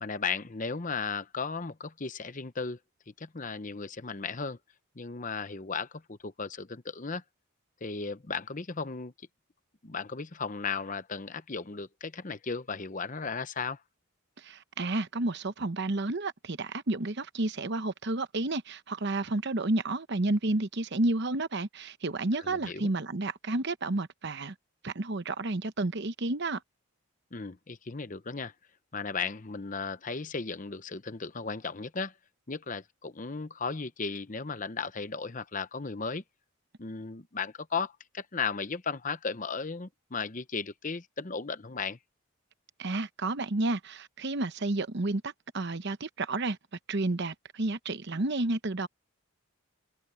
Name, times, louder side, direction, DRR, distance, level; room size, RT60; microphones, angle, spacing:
voice 1, 0.0-2.8 3.1-4.6 4.9-7.2 7.8-9.1 9.8-13.8 22.3-22.9 27.3-28.5 28.9-32.1 32.5-36.2 36.8-42.0, left 5 dB, 35° left, 0.8 m, -35 dB
voice 2, 14.4-24.5 24.8-26.6 42.8-46.6 46.9-48.9, right 2 dB, 50° right, 0.9 m, -31 dB
open air
head